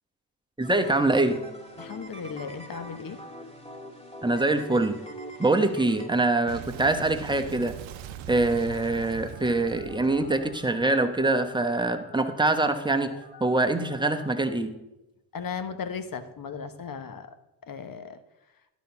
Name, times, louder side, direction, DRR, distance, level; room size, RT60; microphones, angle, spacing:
sound 1, 0.6-6.1, equal, 10° left, 2.2 m, -43 dB
voice 1, 0.6-1.4 4.2-5.0 5.4-7.7 8.3-13.1 13.4-14.8, right 2 dB, 10° right, 6 dB, 1.1 m, -24 dB
voice 2, 1.8-3.2 5.6-5.7 15.3-17.3 17.6-18.2, left 6 dB, 45° left, 9 dB, 1.0 m, -36 dB
Boom, 6.5-11.7, right 10 dB, 70° right, 0.7 m, -41 dB
Telephone, 8.7-14.4, left 3 dB, 80° left, 2.4 m, -49 dB
11.5 x 4.2 x 5.8 m, 0.96 s
hypercardioid pair, 40°, 49 cm